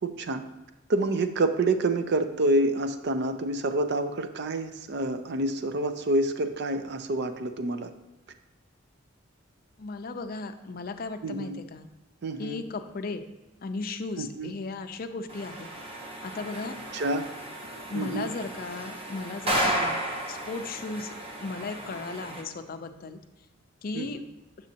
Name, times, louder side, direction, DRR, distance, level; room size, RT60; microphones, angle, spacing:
voice 1, 0.0-0.4 0.9-7.9 11.2-11.6 12.2-12.6 14.2-14.5 16.9-17.3 17.9-18.3 23.9-24.1, right 2 dB, 55° right, 8 dB, 0.5 m, -27 dB
voice 2, 9.8-11.9 12.4-13.2 13.6-15.7 16.2-16.8 17.9-21.1 21.4-23.2 23.8-24.2, left 3 dB, 45° left, 7 dB, 0.4 m, -36 dB
sound 1, 15.3-22.4, right 1 dB, 30° right, 0.8 m, -33 dB
6.8 x 6.2 x 2.8 m, 1.0 s
head